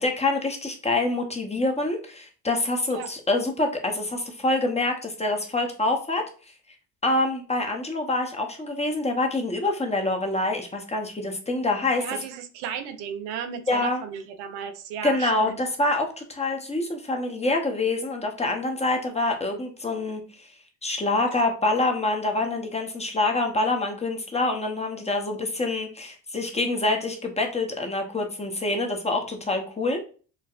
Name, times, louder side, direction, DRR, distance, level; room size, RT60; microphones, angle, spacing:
voice 1, 0.0-6.2 7.0-12.1 13.7-14.0 15.0-20.2 20.8-30.0, left 2 dB, 15° left, 3 dB, 0.8 m, -26 dB
voice 2, 12.0-15.6, right 8 dB, 80° right, 7 dB, 0.6 m, -34 dB
4.6 x 2.1 x 2.4 m, 0.39 s
supercardioid pair, 70°, 41 cm